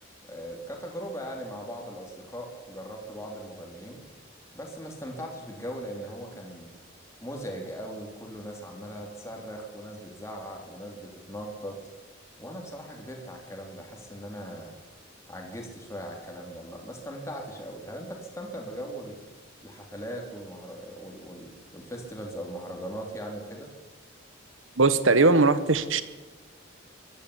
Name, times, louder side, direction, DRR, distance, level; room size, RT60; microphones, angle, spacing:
voice 1, 0.2-4.0 4.6-6.7 7.2-11.8 12.4-14.8 15.3-19.2 19.6-23.7, equal, 15° left, 0 dB, 3.4 m, -39 dB
voice 2, 24.8-26.0, right 3 dB, 85° right, 14 dB, 1.2 m, -20 dB
21.5 x 12.5 x 10.0 m, 1.2 s
head